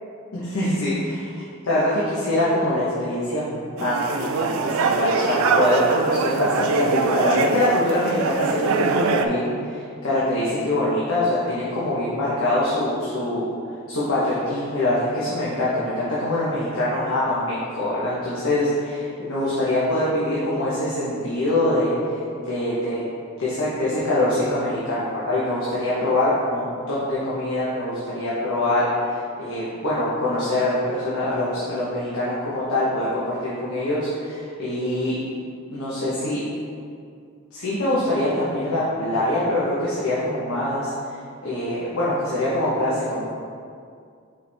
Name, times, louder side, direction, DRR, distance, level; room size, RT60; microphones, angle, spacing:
voice 1, 0.3-0.9 1.6-13.4 13.9-23.0 23.4-35.2 35.7-36.4 37.5-40.9 41.4-43.2, left 1 dB, 85° left, -9 dB, 1.2 m, -24 dB
sound 1, 3.8-9.3, right 5 dB, 75° right, 0.4 m, -23 dB
5.7 x 4.7 x 3.5 m, 2.3 s
head